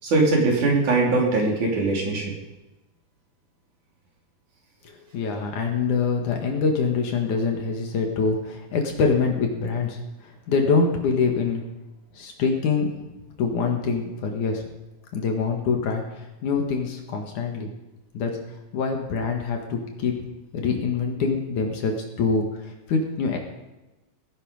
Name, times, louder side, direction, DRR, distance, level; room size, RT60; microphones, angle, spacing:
voice 1, 0.0-2.3, right 3 dB, 65° right, -1 dB, 4.8 m, -21 dB
voice 2, 5.1-10.0 10.5-11.6 12.2-12.9 13.4-14.6 15.1-16.0 16.4-17.7 18.1-18.3 18.7-20.2 20.5-22.5 22.9-23.4, left 5 dB, 70° left, 2 dB, 3.1 m, -24 dB
18.5 x 11.0 x 5.4 m, 1.0 s
omnidirectional pair, 3.8 m